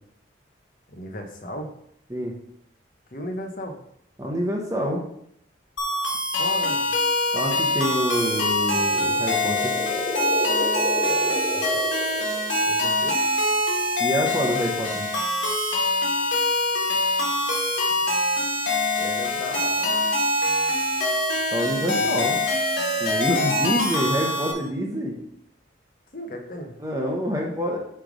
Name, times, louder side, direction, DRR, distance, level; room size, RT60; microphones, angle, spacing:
voice 1, 0.9-1.7 3.1-3.8 6.4-6.9 11.5-11.7 12.6-13.3 19.0-20.1 21.8-22.5 26.1-26.8, equal, 45° left, 3 dB, 1.0 m, -36 dB
voice 2, 4.2-5.0 7.3-9.7 14.0-15.1 21.5-22.4 23.0-25.2 26.8-27.8, equal, 15° right, -1 dB, 0.9 m, -26 dB
sound 1, 5.8-24.5, left 1 dB, 75° left, 1.9 m, -24 dB
sound 2, 8.7-12.9, left 1 dB, 30° left, 0.5 m, -32 dB
8.9 x 3.4 x 5.1 m, 0.72 s
head